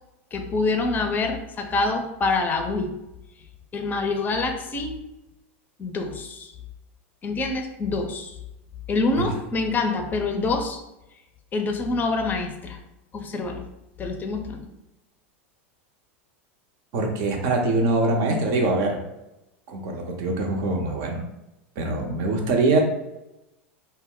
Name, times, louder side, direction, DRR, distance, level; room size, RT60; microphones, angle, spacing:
voice 1, 0.3-2.9 3.7-5.0 5.8-6.5 7.2-8.4 8.9-10.8 11.5-12.8 13.1-13.7 14.0-14.7, left 3 dB, 25° left, 5 dB, 0.5 m, -26 dB
voice 2, 16.9-19.0 19.7-21.2 21.8-22.8, right 2 dB, 55° right, 2 dB, 0.7 m, -23 dB
2.1 x 2.1 x 3.7 m, 0.93 s
hypercardioid pair, 105°, 7 cm